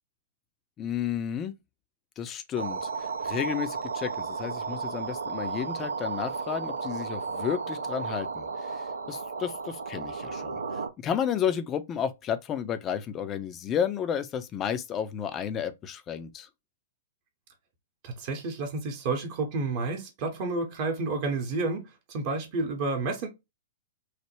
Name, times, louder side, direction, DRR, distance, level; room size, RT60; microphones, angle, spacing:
voice 1, 0.8-1.5 2.2-16.5, left 8 dB, 25° left, 0.4 m, -32 dB
sound 1, 2.6-10.9, right 5 dB, 80° right, 0.4 m, -34 dB
voice 2, 18.0-23.3, right 3 dB, 45° right, 0.8 m, -30 dB
3.2 x 2.1 x 3.0 m
figure-of-eight pair, 110°, 0 cm